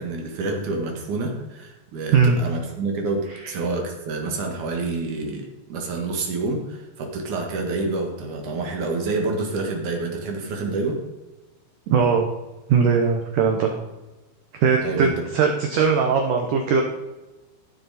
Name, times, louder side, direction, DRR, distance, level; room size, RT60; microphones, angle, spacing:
voice 1, 0.0-11.0 14.8-15.1, right 3 dB, 55° right, 1 dB, 2.4 m, -28 dB
voice 2, 11.9-12.3 12.7-13.8 14.5-16.8, right 6 dB, 80° right, 3 dB, 1.8 m, -20 dB
16.0 x 6.8 x 4.2 m, 1.1 s
omnidirectional pair, 5.2 m